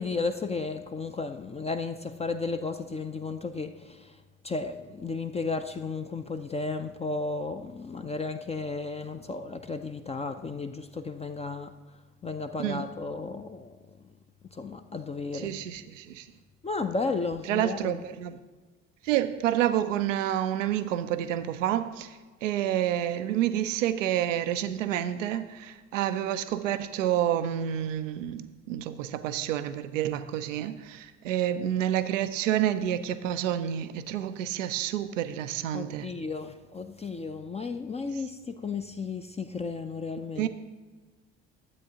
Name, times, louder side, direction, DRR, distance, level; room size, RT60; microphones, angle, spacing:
voice 1, 0.0-4.1 4.4-11.8 12.2-13.7 14.5-15.5 16.6-18.0 35.7-40.5, left 4 dB, 15° left, 0.5 m, -33 dB
voice 2, 15.3-16.2 17.5-18.4 19.0-36.1 40.4-40.5, right 11 dB, 80° right, 0.5 m, -29 dB
12.5 x 8.0 x 2.8 m
figure-of-eight pair, 55°, 37 cm